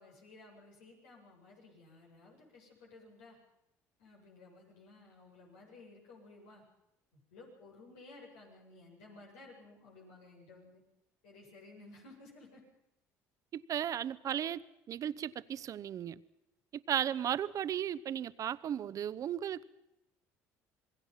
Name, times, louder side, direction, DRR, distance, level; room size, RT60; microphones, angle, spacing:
voice 1, 0.0-3.4 4.0-6.6 7.1-10.8 11.2-12.6, left 2 dB, 85° left, -1 dB, 8.0 m, -56 dB
voice 2, 13.5-14.6 14.9-16.2 16.9-19.6, right 10 dB, 50° right, 14 dB, 0.9 m, -35 dB
27.0 x 21.0 x 5.8 m, 0.85 s
supercardioid pair, 75°, 7 cm